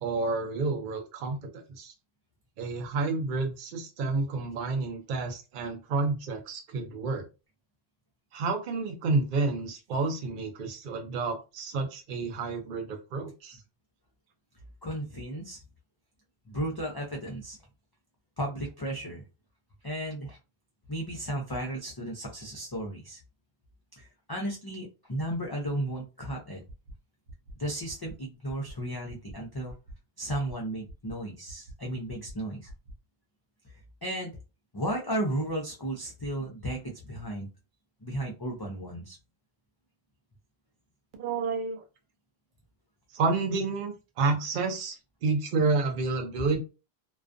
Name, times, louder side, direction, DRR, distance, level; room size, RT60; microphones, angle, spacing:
voice 1, 0.0-1.9 2.6-7.3 8.3-13.6 41.2-41.8 43.1-45.0 45.2-46.6, right 3 dB, 60° right, 2 dB, 0.7 m, -30 dB
voice 2, 14.8-15.6 16.5-17.6 18.4-19.2 19.8-20.4 20.9-23.2 24.0-26.6 27.6-29.7 30.2-32.7 34.0-34.4 34.7-37.5 38.0-39.2, right 1 dB, 35° left, -1 dB, 0.4 m, -34 dB
sound 1, 26.7-26.9 27.3-27.5 27.9-28.1 28.5-28.7 29.1-29.3 29.7-29.9 30.3-30.5 30.9-31.1 31.5-31.7 32.1-32.3 32.7-32.9, right 1 dB, 90° right, 0.8 m, -45 dB
2.3 x 2.3 x 2.4 m, 0.29 s
omnidirectional pair, 1.1 m